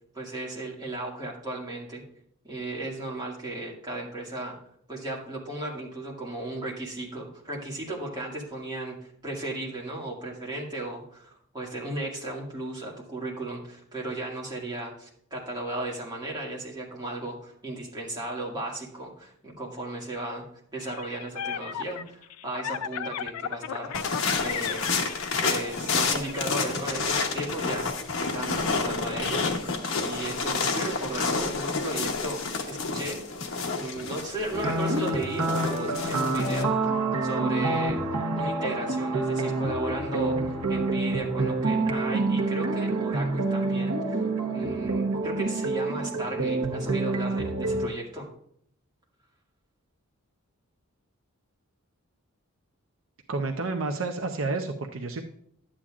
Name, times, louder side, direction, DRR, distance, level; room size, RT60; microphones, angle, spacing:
voice 1, 0.1-2.0 2.4-4.6 4.9-20.5 20.7-24.9 25.4-27.9 28.2-29.5 30.0-33.2 33.5-36.8 37.2-38.0 38.3-48.3, right 2 dB, 20° right, -3 dB, 2.1 m, -35 dB
sound 1, 20.8-26.6, left 9 dB, 85° left, 0.4 m, -35 dB
sound 2, 23.9-36.6, left 4 dB, 65° left, 1.0 m, -29 dB
sound 3, 34.5-47.9, right 2 dB, 85° right, 1.0 m, -27 dB
voice 2, 53.3-55.2, right 3 dB, 65° right, 5 dB, 0.6 m, -30 dB
11.5 x 8.7 x 2.5 m, 0.67 s
head